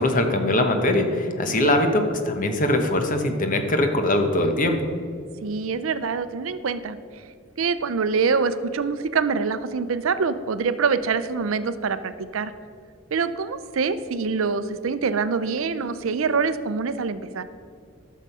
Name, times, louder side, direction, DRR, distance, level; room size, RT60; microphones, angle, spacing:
voice 1, 0.0-4.8, left 1 dB, 40° left, 6 dB, 1.0 m, -22 dB
voice 2, 5.4-7.0 7.6-12.5 13.1-17.4, right 5 dB, 75° right, 13 dB, 0.5 m, -25 dB
12.5 x 6.5 x 5.5 m, 2.2 s
head